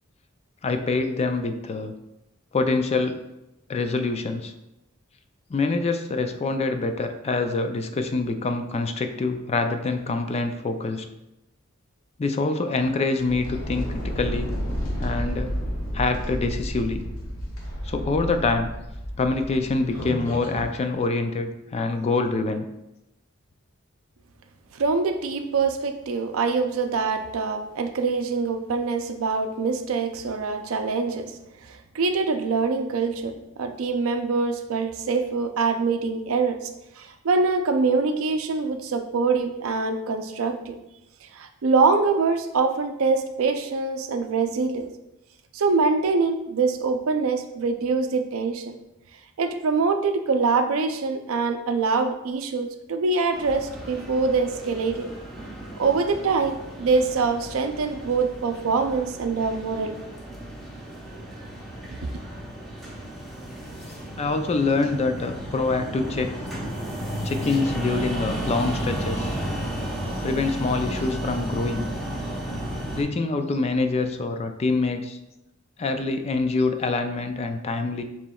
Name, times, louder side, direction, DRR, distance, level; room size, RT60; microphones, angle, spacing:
voice 1, 0.6-1.9 2.5-3.2 3.7-4.5 5.5-11.1 12.2-14.5 15.0-15.5 15.9-17.0 17.8-18.7 19.2-22.7 63.8-63.9 64.2-66.3 67.2-69.4 70.2-71.9 73.0-75.2 75.8-78.0, left 3 dB, 30° left, 7 dB, 0.3 m, -25 dB
sound 1, 13.1-20.7, equal, 80° left, 1.4 m, -31 dB
voice 2, 24.7-31.3 31.6-36.7 37.0-40.8 41.3-44.9 45.5-48.8 49.4-55.1 55.8-60.0, right 4 dB, 80° right, 7 dB, 0.5 m, -24 dB
sound 2, 53.3-73.0, equal, ahead, 0.9 m, -33 dB
6.9 x 3.0 x 2.3 m, 0.90 s
head